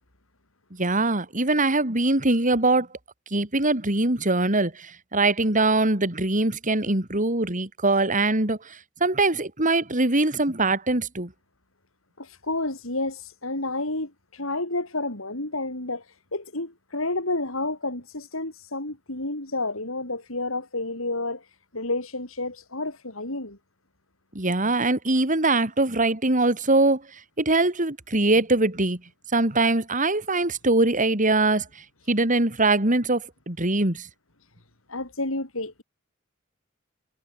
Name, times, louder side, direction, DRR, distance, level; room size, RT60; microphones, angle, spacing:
voice 1, 0.8-2.9 3.3-11.3 24.3-27.0 27.4-29.0 29.3-31.7 32.1-34.1, right 2 dB, 40° right, 4.0 m, -22 dB
voice 2, 12.2-16.0 16.3-21.4 21.7-23.6 34.9-35.8, left 2 dB, 85° left, 6.0 m, -30 dB
head